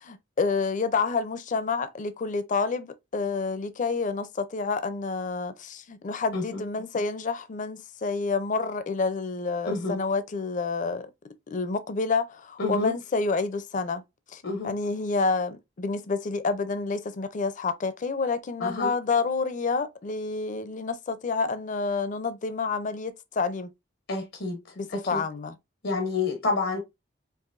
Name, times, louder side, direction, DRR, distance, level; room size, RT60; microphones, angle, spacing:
voice 1, 0.0-11.1 11.5-14.0 14.3-23.7 24.8-25.6, left 4 dB, 45° left, 0.5 m, -29 dB
voice 2, 9.7-10.0 12.6-12.9 14.4-14.7 18.6-18.9 24.1-24.6 24.9-25.2 25.8-26.8, left 3 dB, 90° left, 1.0 m, -29 dB
4.6 x 2.9 x 2.5 m
head